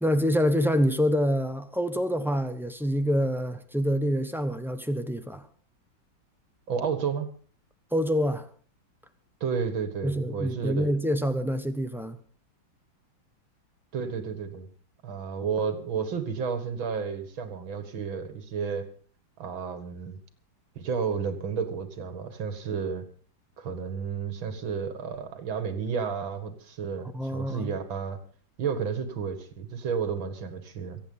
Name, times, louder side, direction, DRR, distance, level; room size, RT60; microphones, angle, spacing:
voice 1, 0.0-5.5 7.9-8.5 10.0-12.2 27.1-27.7, equal, 5° right, 0.3 m, -26 dB
voice 2, 6.7-7.3 9.4-10.9 13.9-14.7 15.0-18.8 19.4-20.2 20.8-23.0 23.6-28.2 28.6-31.0, right 6 dB, 80° right, 2.6 m, -31 dB
24.0 x 8.4 x 5.5 m
omnidirectional pair, 2.1 m